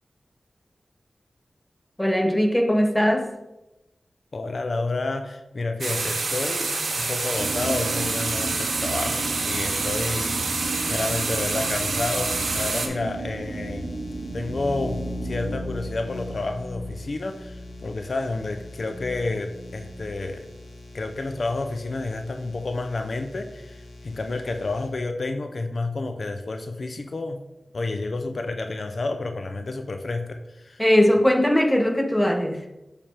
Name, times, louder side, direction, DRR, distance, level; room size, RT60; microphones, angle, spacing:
voice 1, 2.0-3.3 30.8-32.6, left 1 dB, 10° left, 5 dB, 0.9 m, -20 dB
voice 2, 4.3-6.7 7.0-10.6 10.9-13.9 14.3-20.5 20.9-27.4 27.7-30.8, left 3 dB, 65° left, 6 dB, 0.5 m, -30 dB
sound 1, 5.8-12.9, right 3 dB, 80° right, 0.8 m, -27 dB
sound 2, 7.4-15.6, right 3 dB, 55° right, 0.6 m, -34 dB
sound 3, 9.1-24.9, left 1 dB, 90° left, 1.0 m, -40 dB
7.3 x 3.4 x 4.4 m, 0.96 s
cardioid pair, 50°, 0 cm